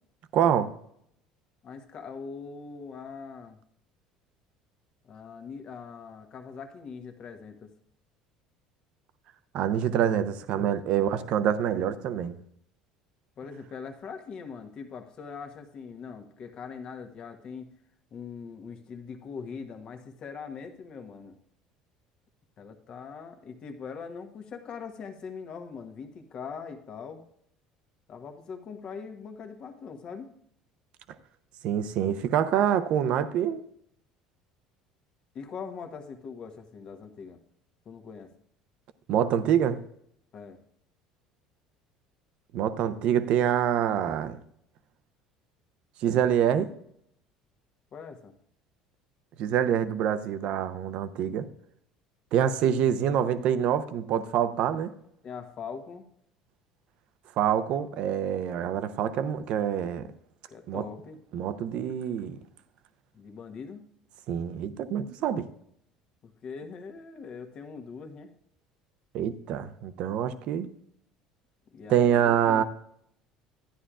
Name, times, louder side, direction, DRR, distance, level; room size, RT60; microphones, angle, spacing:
voice 1, 0.3-0.7 9.5-12.4 31.6-33.6 39.1-39.8 42.5-44.4 46.0-46.7 49.4-51.5 52.3-54.9 57.4-60.1 60.7-60.8 61.3-62.4 64.3-65.5 69.1-70.7 71.9-72.6, right 9 dB, 60° right, 0.7 m, -26 dB
voice 2, 1.6-3.6 5.0-7.7 11.0-11.3 13.4-17.7 18.1-21.4 22.6-27.2 28.1-30.3 35.3-37.4 37.8-38.3 40.3-40.6 47.9-48.3 55.2-56.0 60.5-61.2 63.1-63.8 66.2-68.3 71.7-72.6, left 5 dB, 50° left, 1.2 m, -42 dB
13.0 x 9.9 x 2.4 m
hypercardioid pair, 70°, 2 cm